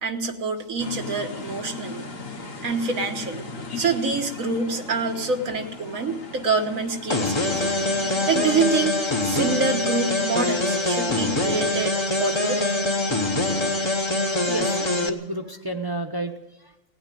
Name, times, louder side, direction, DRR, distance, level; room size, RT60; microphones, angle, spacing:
voice 1, 0.0-2.1 2.6-3.5 3.8-7.8 8.3-11.9 12.2-12.6, right 4 dB, 85° right, 4 dB, 1.8 m, -26 dB
sound 1, 0.8-8.9, left 3 dB, 50° left, 1.6 m, -37 dB
sound 2, 7.1-15.1, left 2 dB, 25° left, 1.0 m, -24 dB
voice 2, 14.5-16.9, right 1 dB, 20° right, 4 dB, 0.9 m, -31 dB
18.0 x 8.9 x 9.0 m, 0.98 s
omnidirectional pair, 1.4 m